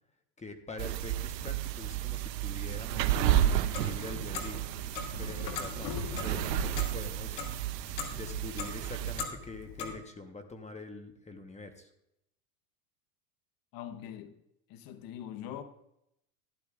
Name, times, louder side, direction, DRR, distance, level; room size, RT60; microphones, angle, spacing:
voice 1, 0.4-3.3 3.8-4.6 5.2-5.9 6.2-7.4 8.1-11.9, left 3 dB, 15° left, 1.0 m, -44 dB
sound 1, 0.8-9.2, right 12 dB, 85° right, 0.7 m, -32 dB
Clock, 3.5-10.0, left 5 dB, 80° left, 1.7 m, -40 dB
voice 2, 13.7-14.4 14.7-15.6, left 10 dB, 45° left, 1.0 m, -42 dB
12.0 x 11.5 x 2.4 m
hypercardioid pair, 100°, 48 cm